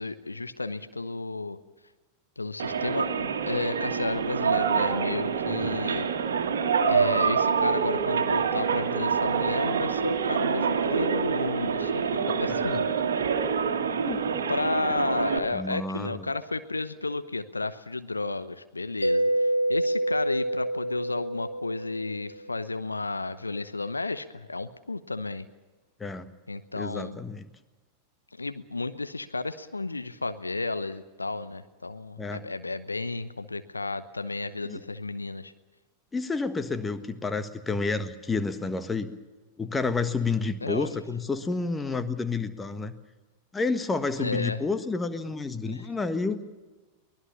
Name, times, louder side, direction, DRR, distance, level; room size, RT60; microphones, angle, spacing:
voice 1, 0.0-1.6 2.4-6.1 6.9-12.9 14.5-25.4 26.5-27.2 28.4-35.5 40.6-40.9 44.2-44.6 45.7-45.9, left 3 dB, 80° left, 12 dB, 0.9 m, -32 dB
sound 1, 2.6-15.4, right 6 dB, 65° right, 1.9 m, -26 dB
voice 2, 5.5-5.8 12.5-12.8 14.1-14.4 15.5-16.3 26.0-26.3 26.7-27.5 32.2-32.4 34.6-34.8 36.1-39.1 39.6-42.9 43.5-46.4, left 4 dB, 15° left, 10 dB, 1.5 m, -30 dB
Mallet percussion, 19.0-22.5, right 1 dB, 90° right, 0.6 m, -27 dB
23.5 x 19.0 x 7.1 m, 1.2 s
figure-of-eight pair, 90°, 0 cm